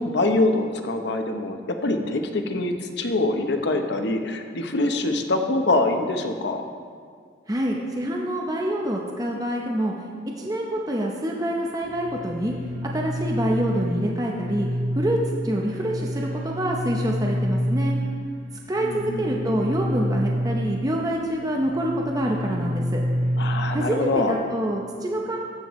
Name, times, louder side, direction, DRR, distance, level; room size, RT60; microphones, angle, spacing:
voice 1, 0.0-6.6 18.8-19.5 23.4-24.4, left 2 dB, 60° left, 5 dB, 0.8 m, -24 dB
voice 2, 7.5-9.9 10.4-12.5 12.8-14.7 15.0-15.2 15.4-18.0 18.7-23.0 23.7-25.4, right 1 dB, 20° right, -1 dB, 0.7 m, -26 dB
sound 1, 11.8-24.3, equal, 45° right, 0.9 m, -28 dB
14.0 x 7.8 x 3.1 m, 2.1 s
head